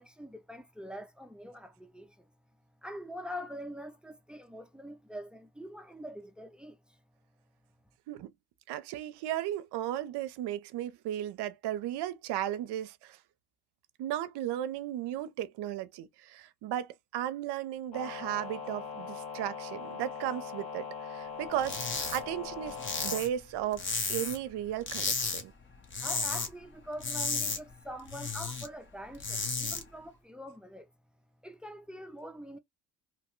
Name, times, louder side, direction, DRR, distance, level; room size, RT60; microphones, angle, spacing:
voice 1, 0.0-2.3 2.8-7.0 26.0-30.9 31.4-32.6, equal, 5° right, 0.3 m, -44 dB
voice 2, 8.7-13.2 14.0-25.5, right 12 dB, 70° right, 0.6 m, -35 dB
sound 1, 17.9-23.2, left 6 dB, 90° left, 1.4 m, -41 dB
sound 2, 21.6-22.2 22.5-24.5 24.8-25.4 25.7-26.5 26.8-28.7 29.0-29.8, left 4 dB, 30° left, 0.7 m, -33 dB
2.8 x 2.1 x 3.0 m
cardioid pair, 95°, 42 cm